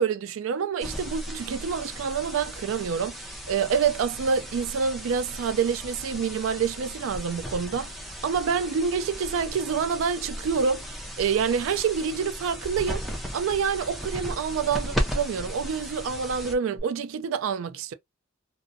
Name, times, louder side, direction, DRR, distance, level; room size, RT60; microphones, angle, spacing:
voice 1, 0.0-3.2 3.5-13.0 13.3-17.9, right 6 dB, 70° right, 0.3 m, -27 dB
sound 1, 0.8-16.8, equal, ahead, 0.5 m, -36 dB
2.5 x 2.0 x 2.5 m
head